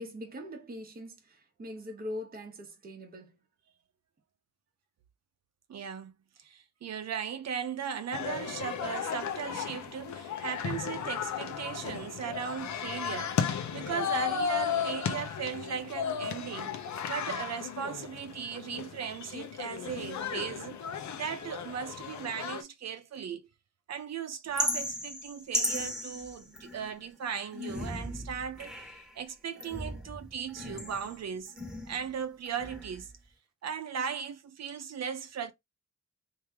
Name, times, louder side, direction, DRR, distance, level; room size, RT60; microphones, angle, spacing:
voice 1, 0.0-3.4, left 1 dB, 30° right, 1.0 m, -42 dB
voice 2, 5.7-6.1 6.4-13.4 13.7-20.8 21.1-23.5 23.9-28.7 29.2-31.5 31.9-33.1 33.6-35.5, right 7 dB, 55° right, 0.7 m, -37 dB
sound 1, 8.1-22.6, left 7 dB, 65° left, 0.7 m, -35 dB
sound 2, 24.6-27.0 27.5-29.1 29.6-32.1 32.5-33.1, left 1 dB, ahead, 1.3 m, -36 dB
3.2 x 2.7 x 3.5 m
wide cardioid pair, 125°, 31 cm